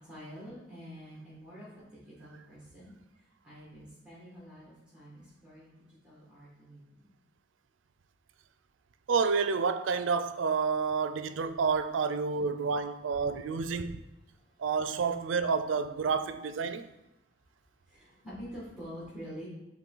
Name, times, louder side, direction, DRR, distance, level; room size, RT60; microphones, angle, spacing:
voice 1, 0.1-2.9 3.4-6.8 16.7-16.8 17.9-19.5, equal, 5° right, 1.8 m, -47 dB
voice 2, 9.1-14.0 14.6-16.8, right 5 dB, 90° right, 0.4 m, -29 dB
7.3 x 3.6 x 3.8 m
head